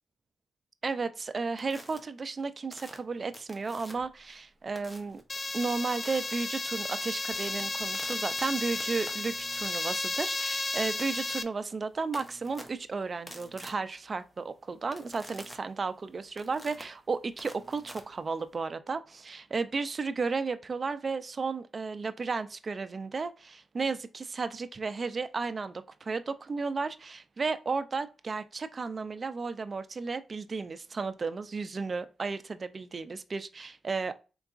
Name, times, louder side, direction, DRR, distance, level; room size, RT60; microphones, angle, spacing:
voice 1, 0.8-5.2 5.5-34.1, right 4 dB, 45° right, 0.4 m, -34 dB
sound 1, 1.6-2.0 2.7-4.2 4.8-5.2 6.0-6.3 6.8-18.7, equal, 10° left, 0.9 m, -49 dB
sound 2, 5.3-11.4, left 2 dB, 35° left, 0.4 m, -33 dB
3.8 x 3.5 x 2.4 m
cardioid pair, 70°, 0 cm